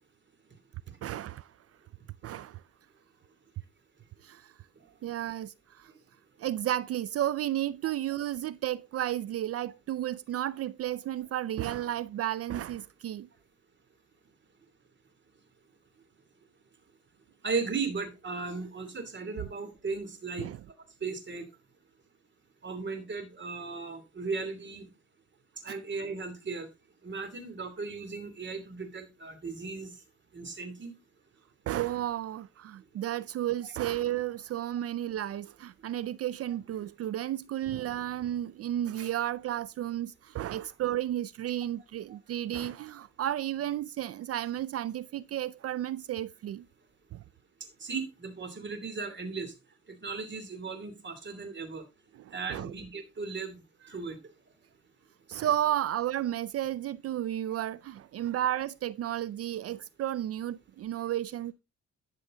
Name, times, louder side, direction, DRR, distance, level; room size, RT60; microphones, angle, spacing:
voice 1, 1.0-1.5 2.2-2.6 4.2-4.5 5.0-5.9 6.4-13.3 20.4-20.6 25.7-25.8 31.7-46.6 47.1-47.2 52.3-52.7 55.3-61.5, right 12 dB, 55° right, 0.4 m, -33 dB
voice 2, 17.4-20.5 21.0-21.5 22.6-24.9 25.6-26.7 27.0-29.9 30.3-30.9 42.1-42.2 47.8-49.5 49.9-51.8 52.3-54.2, right 4 dB, 40° right, 2.8 m, -36 dB
12.0 x 6.7 x 3.7 m
cardioid pair, 90°, 30 cm